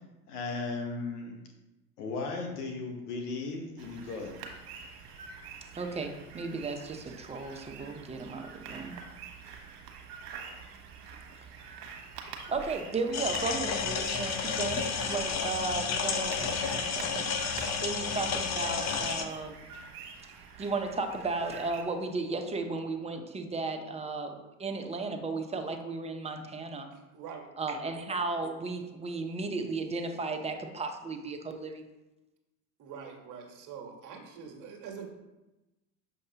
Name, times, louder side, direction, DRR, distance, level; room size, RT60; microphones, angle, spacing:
voice 1, 0.3-1.3 2.0-4.3, left 3 dB, 75° left, 2 dB, 1.1 m, -36 dB
sound 1, 3.8-21.8, right 5 dB, 65° right, 1.1 m, -46 dB
voice 2, 5.7-9.0 12.5-19.7 20.6-26.9 27.6-31.8, right 3 dB, 15° right, 5 dB, 0.6 m, -35 dB
sound 2, 13.1-19.2, left 5 dB, 35° left, 0.8 m, -31 dB
voice 3, 26.9-27.8 32.8-35.1, right 6 dB, 40° right, 2 dB, 1.4 m, -45 dB
6.4 x 5.3 x 2.8 m, 1.0 s
hypercardioid pair, 85°, 47 cm